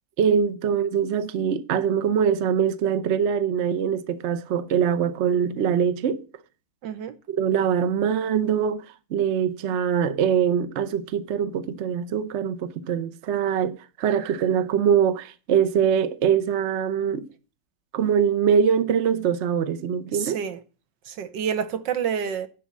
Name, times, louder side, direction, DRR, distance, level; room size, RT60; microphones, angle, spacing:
voice 1, 0.2-6.2 7.3-8.8 9.1-17.3 17.9-20.4, right 7 dB, 55° right, 0.8 m, -23 dB
voice 2, 6.8-7.1 20.1-20.6 21.1-22.5, right 7 dB, 75° right, 1.6 m, -28 dB
11.0 x 4.2 x 7.3 m
omnidirectional pair, 2.0 m